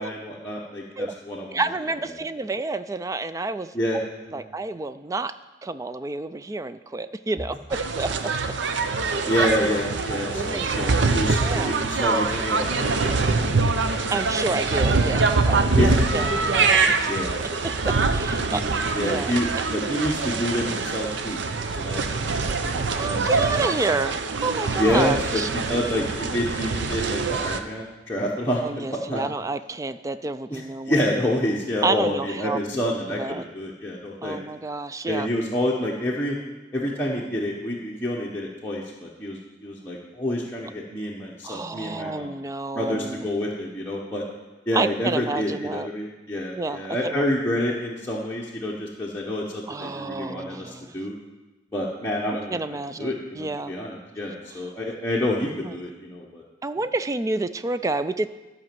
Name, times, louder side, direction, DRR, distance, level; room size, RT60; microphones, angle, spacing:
voice 1, 0.0-1.6 3.7-4.0 4.3-4.4 9.3-14.0 15.7-16.0 17.1-17.6 18.4-21.4 21.8-23.9 24.8-29.2 30.5-34.4 35.1-36.4 36.7-42.4 42.7-44.2 44.7-51.1 51.7-56.4, left 1 dB, 10° left, -5 dB, 1.1 m, -28 dB
voice 2, 1.5-3.7 4.3-5.3 5.6-8.3 9.0-9.5 10.1-11.1 11.4-11.7 14.1-15.8 16.1-17.1 17.6-18.6 19.0-19.3 23.0-25.5 26.2-26.4 28.6-31.0 31.8-32.6 33.2-33.4 34.2-35.3 41.4-43.2 44.7-45.9 46.6-47.2 49.7-51.0 52.3-53.7 55.6-55.7 56.6-58.3, right 3 dB, 15° right, 12 dB, 0.3 m, -29 dB
sound 1, 7.7-27.6, right 4 dB, 65° right, 0.6 m, -24 dB
12.5 x 5.2 x 7.5 m, 1.1 s
head